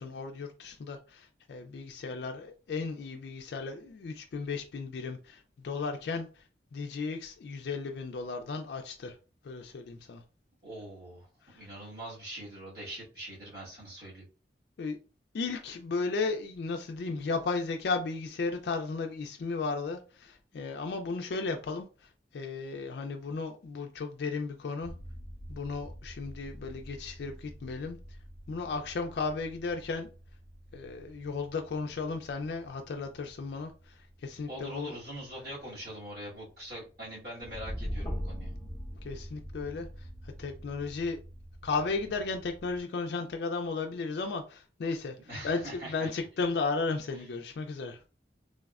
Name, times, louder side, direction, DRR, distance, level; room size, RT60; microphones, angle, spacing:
voice 1, 0.0-6.4 6.7-9.2 9.4-10.2 11.4-11.7 14.8-15.0 15.3-24.9 25.5-28.0 28.5-30.1 30.7-35.0 39.0-41.2 41.6-45.2 45.4-48.0, left 4 dB, 65° left, 0.3 m, -35 dB
voice 2, 10.6-11.3 11.5-14.2 34.5-38.5 45.3-46.1, right 1 dB, 60° right, 1.4 m, -43 dB
sound 1, 24.8-42.8, equal, 15° left, 0.5 m, -45 dB
3.3 x 2.1 x 2.3 m
head